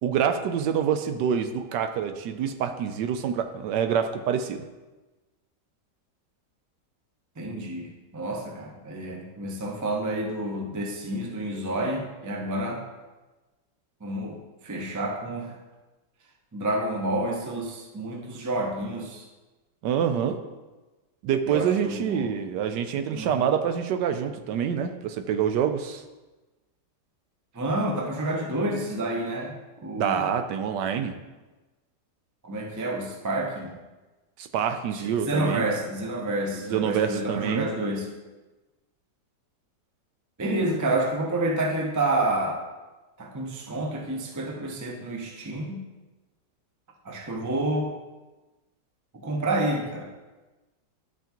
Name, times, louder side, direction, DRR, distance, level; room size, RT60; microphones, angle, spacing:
voice 1, 0.0-4.6 19.8-20.4 21.2-26.0 30.0-31.1 34.4-35.6 36.7-37.7, right 8 dB, 80° right, 8 dB, 1.2 m, -26 dB
voice 2, 7.4-12.8 14.0-15.6 16.5-19.2 21.5-22.3 23.1-23.5 27.5-30.3 32.4-33.8 34.9-38.1 40.4-42.6 43.2-45.8 47.0-47.9 49.1-50.1, right 1 dB, 25° right, 1 dB, 0.4 m, -29 dB
11.0 x 5.7 x 3.0 m, 1.2 s
omnidirectional pair, 1.9 m